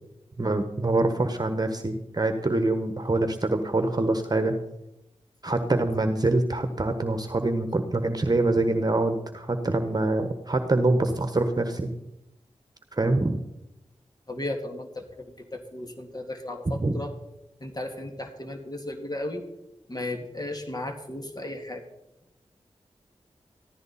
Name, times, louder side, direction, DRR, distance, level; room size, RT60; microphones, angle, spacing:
voice 1, 0.4-4.6 5.4-11.9 12.9-13.4 16.8-16.9, right 2 dB, 35° right, 8 dB, 1.3 m, -25 dB
voice 2, 14.3-15.1 15.5-17.1 17.6-19.4 19.9-21.8, left 1 dB, 35° left, 3 dB, 2.2 m, -35 dB
15.0 x 12.5 x 4.2 m, 0.90 s
cardioid pair, 40°, 12 cm